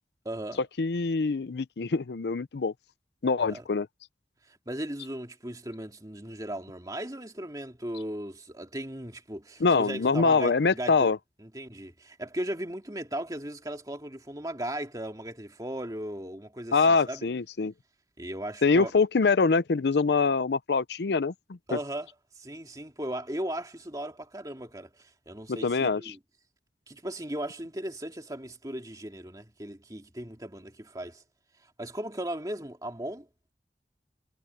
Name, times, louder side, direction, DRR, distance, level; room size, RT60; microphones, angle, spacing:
voice 1, 0.2-0.6 3.5-3.6 4.4-11.1 11.4-17.3 18.2-18.9 21.7-22.1 22.3-26.2 26.9-31.2 31.6-33.3, right 1 dB, 20° right, 2.3 m, -37 dB
voice 2, 0.8-2.7 3.2-3.9 9.6-11.2 16.7-17.7 18.6-21.3 21.7-21.8 25.6-26.1, left 4 dB, 70° left, 0.5 m, -24 dB
head